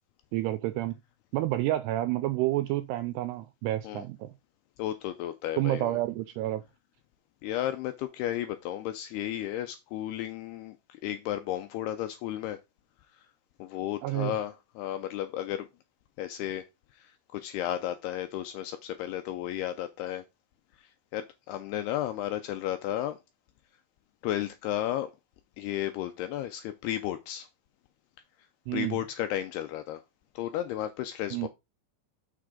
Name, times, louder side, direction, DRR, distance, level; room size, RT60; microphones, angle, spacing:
voice 1, 0.3-1.0 1.3-4.3 5.6-6.6 14.0-14.4 28.7-29.0 31.3-31.5, right 15 dB, 85° right, 2.3 m, -29 dB
voice 2, 4.8-6.0 7.4-12.6 13.6-15.7 16.2-16.6 16.9-20.2 20.8-23.2 24.2-25.1 25.6-27.5 28.7-30.0 30.4-31.5, left 12 dB, 85° left, 2.3 m, -33 dB
6.7 x 6.0 x 3.7 m
omnidirectional pair, 5.2 m